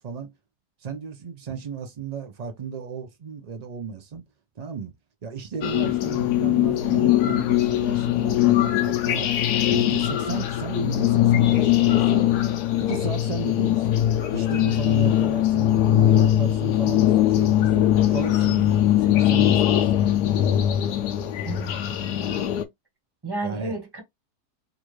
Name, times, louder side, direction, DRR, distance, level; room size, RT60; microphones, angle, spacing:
voice 1, 0.8-4.2 4.6-4.9 5.2-9.3 9.7-12.2 12.8-14.0 14.3-20.0 23.4-23.8, right 5 dB, 65° right, 0.4 m, -34 dB
sound 1, 5.6-22.6, left 12 dB, 85° left, 1.2 m, -21 dB
voice 2, 21.4-22.0 23.2-24.0, right 2 dB, 15° right, 1.0 m, -32 dB
3.9 x 2.4 x 3.1 m
omnidirectional pair, 1.7 m